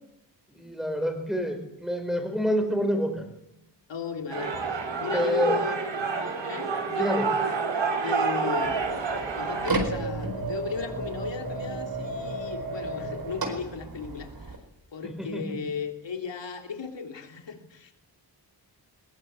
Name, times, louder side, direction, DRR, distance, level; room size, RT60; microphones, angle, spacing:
voice 1, 0.5-3.3 5.1-5.6 7.0-7.3 15.0-15.6, equal, ahead, 5 dB, 4.5 m, -27 dB
voice 2, 3.9-4.6 5.0-6.0 6.4-7.6 8.0-8.9 9.3-14.6 14.9-17.9, left 5 dB, 75° left, 4 dB, 3.5 m, -35 dB
sound 1, 4.3-9.7, right 5 dB, 90° right, 5.0 m, -28 dB
sound 2, 8.6-14.6, right 2 dB, 55° right, 4.5 m, -33 dB
22.0 x 20.5 x 8.3 m, 0.83 s
wide cardioid pair, 175°, 44 cm